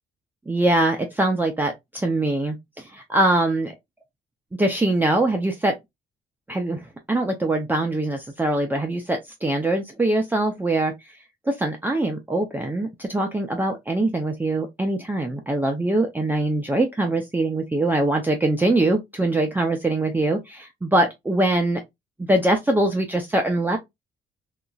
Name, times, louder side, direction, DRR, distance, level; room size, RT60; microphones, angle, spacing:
voice 1, 0.5-3.7 4.6-5.7 6.5-11.1 11.5-21.8 22.2-23.8, right 2 dB, 10° right, 0.5 m, -23 dB
2.9 x 2.4 x 2.2 m
cardioid pair, 90°, 20 cm